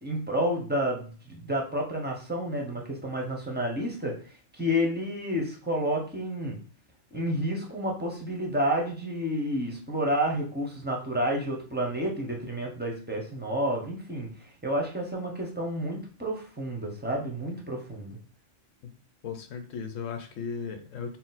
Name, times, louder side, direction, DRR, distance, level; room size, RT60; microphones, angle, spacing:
voice 1, 0.0-4.1 4.5-6.6 7.1-18.2, equal, 10° right, 0 dB, 0.6 m, -30 dB
voice 2, 19.2-21.2, left 6 dB, 80° left, 7 dB, 1.0 m, -36 dB
4.1 x 2.1 x 4.0 m, 0.39 s
omnidirectional pair, 1.3 m